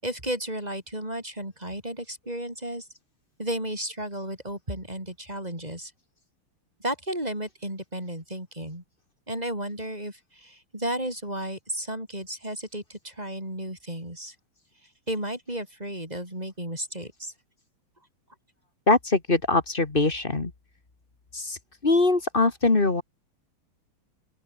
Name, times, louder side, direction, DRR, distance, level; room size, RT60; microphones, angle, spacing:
voice 1, 0.0-2.9 3.4-5.9 6.8-8.8 9.3-14.3 14.8-17.3, right 1 dB, 15° right, 7.9 m, -33 dB
voice 2, 18.9-20.5 21.3-21.6 21.8-23.0, left 3 dB, 25° left, 1.9 m, -22 dB
open air
omnidirectional pair, 2.4 m